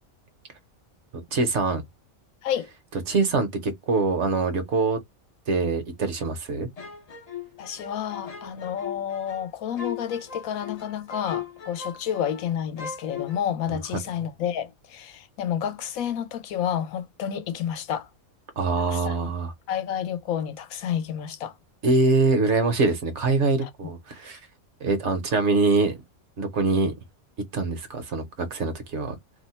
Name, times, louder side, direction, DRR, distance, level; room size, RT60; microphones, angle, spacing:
voice 1, 1.3-1.8 3.1-5.0 5.5-6.7 18.6-19.5 21.8-24.4 24.8-26.0 26.4-26.9 27.5-29.1, right 3 dB, 60° right, 1.0 m, -24 dB
sound 1, 6.8-12.5 12.8-13.4, left 8 dB, 50° left, 0.5 m, -38 dB
voice 2, 7.6-18.1 18.9-19.1 19.7-21.5 23.6-23.9, left 9 dB, 75° left, 1.1 m, -30 dB
2.7 x 2.1 x 4.1 m
omnidirectional pair, 1.5 m